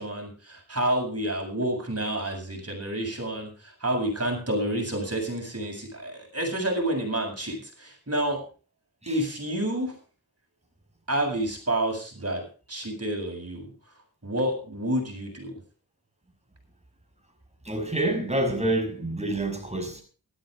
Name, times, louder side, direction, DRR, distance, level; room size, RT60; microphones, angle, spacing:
voice 1, 0.0-8.4 9.1-9.9 11.1-12.4 12.7-13.7 14.2-15.6, right 1 dB, 40° right, 8.0 m, -29 dB
voice 2, 17.6-20.0, right 1 dB, 15° right, 6.2 m, -27 dB
13.5 x 13.0 x 5.0 m
cardioid pair, 50°, 38 cm